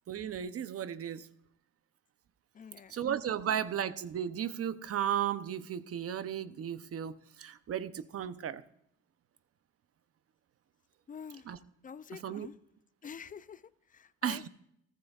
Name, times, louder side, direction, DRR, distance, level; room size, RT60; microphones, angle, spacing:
voice 1, 0.1-1.3 2.9-8.6 11.5-11.6 12.2-12.5 14.2-14.5, right 9 dB, 50° right, 0.7 m, -35 dB
voice 2, 2.5-3.0 3.5-3.6 11.1-11.6 11.8-12.6 13.0-14.5, left 7 dB, 30° left, 0.4 m, -47 dB
14.5 x 14.5 x 2.4 m
cardioid pair, 90°, 30 cm